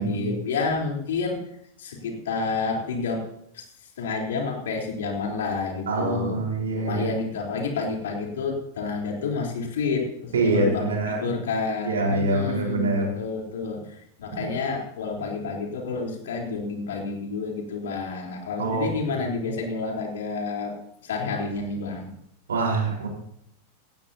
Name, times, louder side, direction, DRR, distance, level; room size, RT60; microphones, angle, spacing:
voice 1, 0.0-1.4 1.8-3.3 3.5-3.6 4.0-6.4 6.8-20.7 21.0-22.1, left 4 dB, 60° left, 0 dB, 3.9 m, -29 dB
voice 2, 5.9-7.1 10.3-11.3 11.8-13.1 14.4-14.5 18.6-19.2 22.5-23.1, right 2 dB, 65° right, -1 dB, 4.6 m, -25 dB
18.0 x 16.0 x 2.9 m, 0.72 s
figure-of-eight pair, 90°, 0 cm